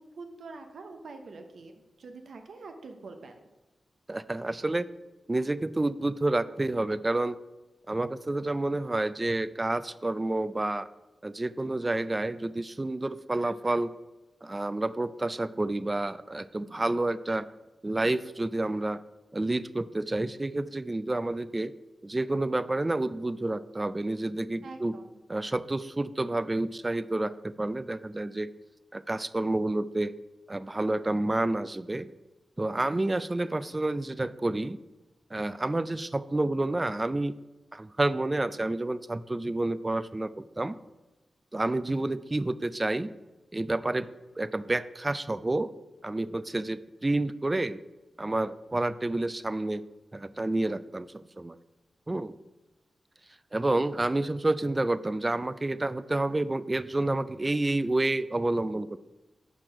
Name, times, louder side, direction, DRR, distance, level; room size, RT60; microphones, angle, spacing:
voice 1, 0.0-3.5 24.6-25.2 41.8-42.1, right 3 dB, 75° right, 6 dB, 0.7 m, -45 dB
voice 2, 4.1-4.9 5.3-7.4 7.9-10.9 11.2-13.9 14.4-17.5 17.8-19.0 19.3-21.7 22.0-24.9 25.3-28.5 28.9-30.1 30.5-32.1 32.6-34.8 35.3-37.3 37.7-40.8 41.5-43.1 43.5-44.1 44.4-45.7 46.0-47.8 48.2-49.8 50.1-51.6 52.1-52.3 53.5-59.0, right 2 dB, 30° right, 16 dB, 0.3 m, -29 dB
6.0 x 4.5 x 4.9 m, 1.1 s
cardioid pair, 45°, 0 cm